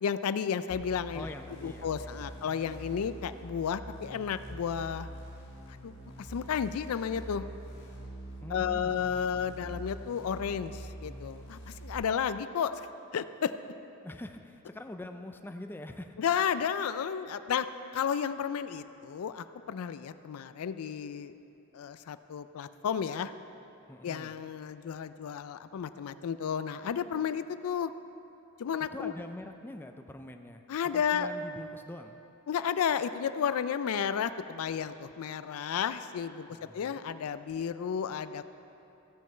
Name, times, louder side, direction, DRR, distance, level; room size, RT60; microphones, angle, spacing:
voice 1, 0.0-5.1 5.8-5.9 6.3-7.4 8.5-12.9 13.1-13.5 16.2-17.7 17.9-21.3 21.7-23.3 24.0-27.9 28.6-29.1 30.7-31.3 32.5-38.5, left 7 dB, 85° left, 13 dB, 0.4 m, -32 dB
sound 1, 0.7-11.9, right 1 dB, 55° left, 1.8 m, -45 dB
voice 2, 1.1-2.3 8.4-8.9 14.0-16.4 23.9-24.3 28.9-30.6 30.9-32.2 36.5-37.0, left 1 dB, 10° left, 6 dB, 0.3 m, -44 dB
15.5 x 6.2 x 4.4 m, 2.9 s
head